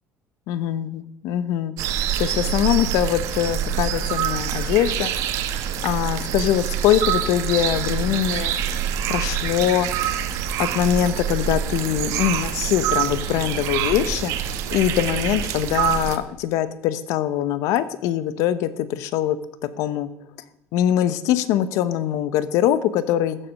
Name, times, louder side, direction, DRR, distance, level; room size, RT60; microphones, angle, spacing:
voice 1, 0.5-1.7 2.2-5.1 5.8-8.5 9.1-9.9 10.6-14.3 14.7-19.4 19.8-20.1 20.7-23.4, left 11 dB, 80° left, 14 dB, 0.9 m, -22 dB
sound 1, 1.8-16.2, right 9 dB, 75° right, 1.3 m, -25 dB
14.5 x 7.7 x 6.5 m, 0.82 s
cardioid pair, 130°, 5 cm